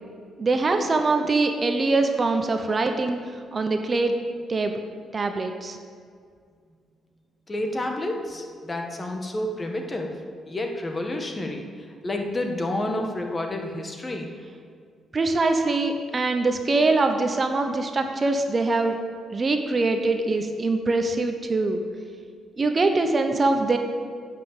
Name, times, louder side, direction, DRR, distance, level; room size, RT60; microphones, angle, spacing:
voice 1, 0.4-3.2 3.5-4.1 4.5-4.8 5.1-5.8 15.1-19.0 19.3-21.8 22.6-23.8, right 3 dB, 35° right, 6 dB, 0.8 m, -23 dB
voice 2, 7.5-10.2 10.5-11.6 12.0-14.3, left 1 dB, 25° left, 3 dB, 1.4 m, -29 dB
9.8 x 5.8 x 7.2 m, 2.1 s
cardioid pair, 90°, 0 cm